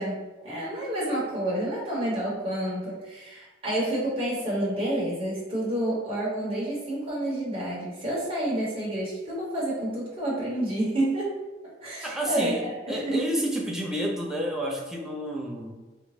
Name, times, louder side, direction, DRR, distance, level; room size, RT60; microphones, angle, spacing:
voice 1, 0.0-11.4 11.8-12.7 12.9-13.2, right 1 dB, 30° right, -8 dB, 0.9 m, -29 dB
voice 2, 12.0-15.7, equal, 5° right, -2 dB, 0.4 m, -30 dB
3.7 x 2.2 x 3.1 m, 1.2 s
head